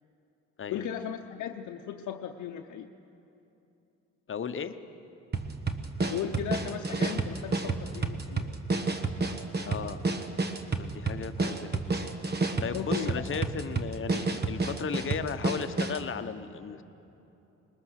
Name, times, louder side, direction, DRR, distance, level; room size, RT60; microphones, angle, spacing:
voice 1, 0.7-2.9 6.1-8.6 12.7-13.4, left 9 dB, 75° left, 3 dB, 0.8 m, -36 dB
voice 2, 4.3-4.7 9.6-10.0 10.8-11.8 12.6-16.8, left 6 dB, 45° left, 10 dB, 1.0 m, -35 dB
sound 1, 5.3-16.1, right 3 dB, 35° right, 1.3 m, -30 dB
21.0 x 20.5 x 6.5 m, 2.9 s
cardioid pair, 90°, 30 cm